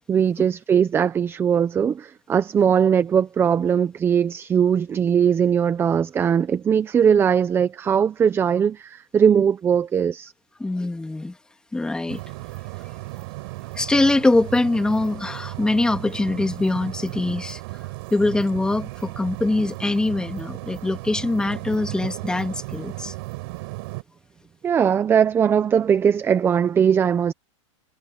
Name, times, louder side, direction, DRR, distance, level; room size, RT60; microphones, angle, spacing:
voice 1, 0.1-10.3 24.6-27.3, right 7 dB, 15° right, 0.8 m, -20 dB
voice 2, 10.6-11.4 11.7-12.2 13.8-17.6 18.1-23.1, left 2 dB, 5° left, 2.5 m, -23 dB
sound 1, 12.1-24.0, right 23 dB, 50° right, 6.9 m, -35 dB
supercardioid pair, 150°, 16 cm